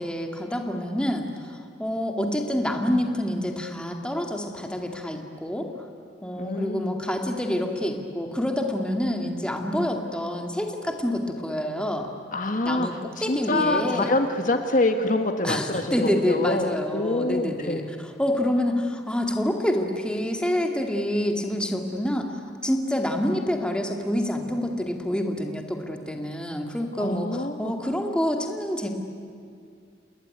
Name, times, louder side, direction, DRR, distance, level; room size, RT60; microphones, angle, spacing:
voice 1, 0.0-5.7 6.2-12.1 12.7-12.9 13.2-14.1 15.4-17.8 18.2-28.9, left 1 dB, 5° left, 3 dB, 2.3 m, -27 dB
voice 2, 6.4-7.0 12.3-12.9 13.2-17.9 27.0-27.7, left 2 dB, 50° left, 6 dB, 1.5 m, -26 dB
29.0 x 19.5 x 9.9 m, 2.3 s
head